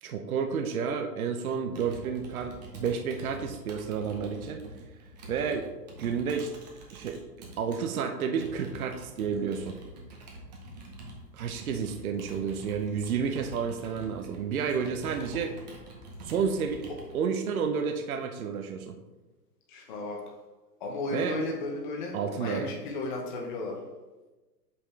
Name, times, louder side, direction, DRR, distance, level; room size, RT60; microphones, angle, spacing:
voice 1, 0.0-4.6 5.3-5.7 6.0-6.5 6.9-7.2 7.6-9.8 11.3-15.5 16.2-18.9 21.1-21.4 22.1-22.7, right 6 dB, 60° right, 5 dB, 0.7 m, -31 dB
Computer keyboard, 1.7-7.8 8.4-17.2, right 1 dB, 25° right, 0.9 m, -45 dB
voice 2, 19.7-20.2 20.8-23.7, left 2 dB, 30° left, -1 dB, 0.9 m, -34 dB
6.8 x 5.6 x 3.2 m, 1.2 s
hypercardioid pair, 170°, 50 cm